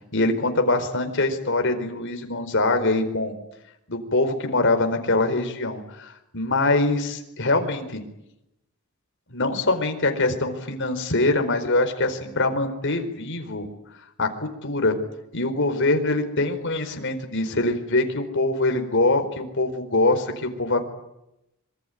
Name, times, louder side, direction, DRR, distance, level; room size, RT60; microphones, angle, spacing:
voice 1, 0.1-3.3 3.9-8.0 9.3-13.7 14.2-15.0 15.3-20.9, left 2 dB, 60° left, 6 dB, 4.5 m, -23 dB
26.0 x 23.5 x 9.2 m, 0.87 s
head